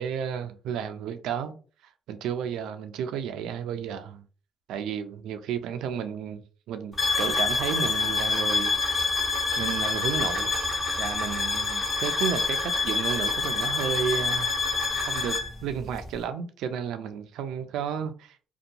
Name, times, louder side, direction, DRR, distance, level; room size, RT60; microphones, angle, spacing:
voice 1, 0.0-1.5 2.1-4.2 4.7-8.8 9.6-10.5 11.0-14.5 15.0-18.4, right 8 dB, 90° right, 0.3 m, -32 dB
sound 1, 7.0-15.5, left 4 dB, 25° left, 1.1 m, -26 dB
2.6 x 2.2 x 2.8 m
cardioid pair, 90°, 0 cm